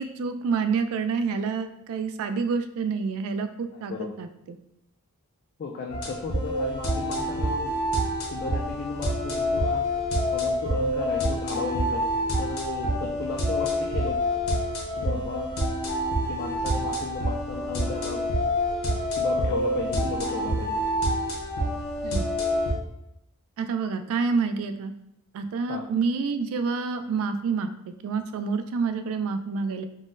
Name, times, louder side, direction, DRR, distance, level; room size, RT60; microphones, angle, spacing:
voice 1, 0.0-3.9 4.2-4.3 22.0-22.3 23.6-24.9 25.3-27.7 28.0-29.8, right 5 dB, 65° right, 10 dB, 0.3 m, -28 dB
voice 2, 3.7-4.1 5.6-7.7 8.3-9.9 10.3-12.1 12.4-14.2 14.9-15.5 16.3-18.3 19.2-20.9 25.7-25.8, left 4 dB, 45° left, 0 dB, 0.3 m, -35 dB
sound 1, 5.9-22.7, equal, 70° left, 0.8 m, -27 dB
3.7 x 2.0 x 2.5 m, 0.81 s
head